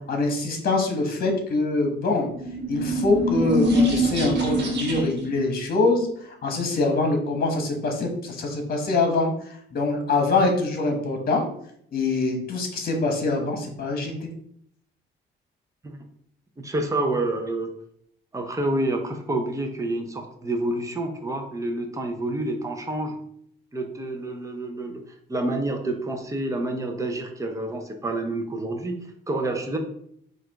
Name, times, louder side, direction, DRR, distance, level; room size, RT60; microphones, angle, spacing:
voice 1, 0.1-2.3 2.7-6.1 6.4-9.3 9.7-11.5 11.9-14.3, left 3 dB, 50° left, 3 dB, 1.2 m, -24 dB
sound 1, 2.3-5.3, equal, 60° right, 1.3 m, -24 dB
voice 2, 16.6-17.7 18.3-23.2 23.7-25.0 25.3-29.8, right 2 dB, 15° right, 3 dB, 0.7 m, -28 dB
4.8 x 2.6 x 3.6 m, 0.67 s
cardioid pair, 90°, 20 cm